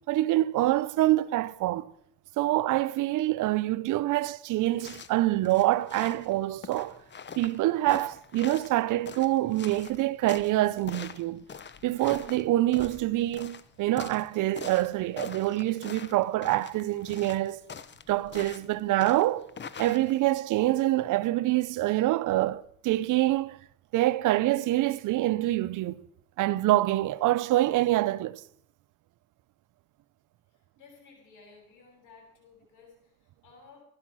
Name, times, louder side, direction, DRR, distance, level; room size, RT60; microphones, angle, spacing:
voice 1, 0.1-1.9 2.4-7.0 7.4-11.4 11.8-17.6 18.1-19.5 19.8-23.6 23.9-26.1 26.4-28.4, right 16 dB, 85° right, 0.7 m, -26 dB
sound 1, 4.7-20.4, left 6 dB, 35° left, 1.0 m, -45 dB
voice 2, 30.5-33.8, left 4 dB, 90° left, 7.5 m, -55 dB
16.0 x 11.5 x 6.2 m
cardioid pair, 90°, 30 cm